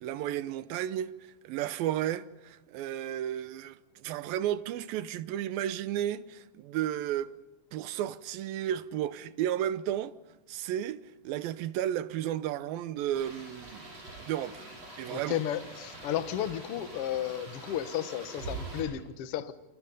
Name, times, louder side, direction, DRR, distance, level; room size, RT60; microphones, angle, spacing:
voice 1, 0.0-1.1 1.4-7.3 7.7-10.1 10.5-13.9 14.2-14.7 15.0-15.4, right 11 dB, 80° right, 2.7 m, -33 dB
sound 1, 13.1-18.8, right 3 dB, 45° right, 8.8 m, -44 dB
voice 2, 15.1-19.5, left 11 dB, 60° left, 1.6 m, -33 dB
28.0 x 26.0 x 5.4 m
omnidirectional pair, 4.2 m